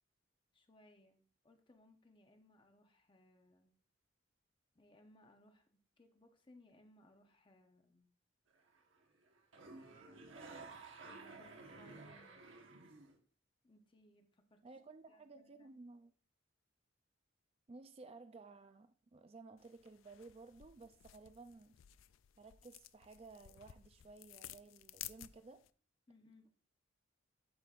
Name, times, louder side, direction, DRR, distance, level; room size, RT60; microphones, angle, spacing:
voice 1, 0.5-3.7 4.7-8.1 9.5-10.5 11.0-12.7 13.6-14.8 15.1-15.8 26.1-26.5, left 1 dB, 25° left, 0.8 m, -66 dB
sound 1, 8.5-9.0 9.2-13.2, right 3 dB, 80° right, 1.2 m, -53 dB
voice 2, 14.6-16.1 17.7-21.8 22.4-25.6, right 3 dB, 30° right, 0.4 m, -56 dB
sound 2, 19.6-25.7, left 14 dB, 85° left, 0.4 m, -55 dB
12.0 x 5.2 x 2.4 m
head